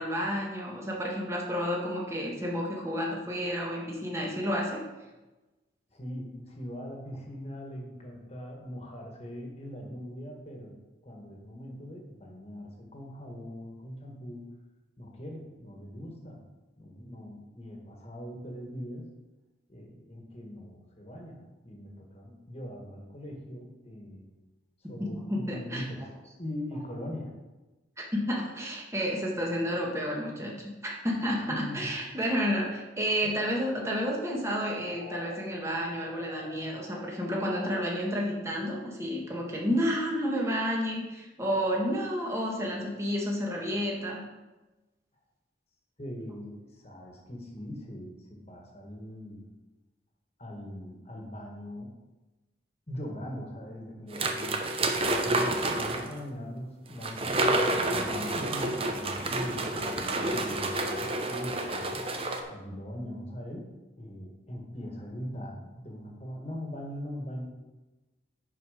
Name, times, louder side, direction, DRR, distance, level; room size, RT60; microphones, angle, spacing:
voice 1, 0.0-4.8 24.8-25.8 28.1-44.2, equal, 15° right, -2 dB, 1.6 m, -31 dB
voice 2, 5.9-10.7 11.0-14.5 15.0-16.4 16.7-19.1 19.7-24.3 24.8-26.1 26.4-27.3 31.5-32.0 33.2-33.3 46.0-49.4 50.4-52.0 52.9-54.7 55.2-62.0 62.5-63.7 64.0-67.5, equal, 35° left, 1 dB, 1.7 m, -41 dB
sound 1, 33.3-35.3 35.7-37.8, left 2 dB, 75° left, 1.1 m, -47 dB
sound 2, 54.1-56.1 57.0-62.4, right 2 dB, 30° right, 0.8 m, -29 dB
10.0 x 4.9 x 5.1 m, 1.1 s
head